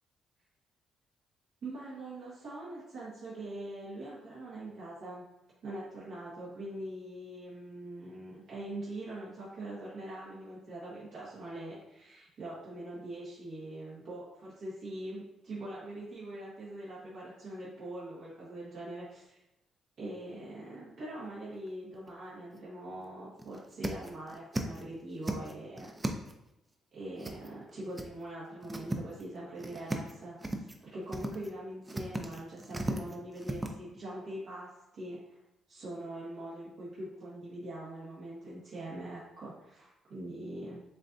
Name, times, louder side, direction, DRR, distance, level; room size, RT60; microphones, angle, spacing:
voice 1, 1.6-5.2 5.6-19.4 20.0-25.9 26.9-35.4 35.7-40.8, right 1 dB, 65° right, -8 dB, 1.5 m, -43 dB
sound 1, 21.7-22.1 22.5-22.6 23.0-23.1 23.4-24.8 25.1-26.5 27.2-27.7 28.0-28.1 28.4-29.3 29.6-30.1 30.4-30.8 31.1-31.5 31.8-33.7, right 1 dB, 15° right, 0.5 m, -36 dB
7.2 x 2.6 x 2.7 m, 0.89 s
cardioid pair, 90°, 0 cm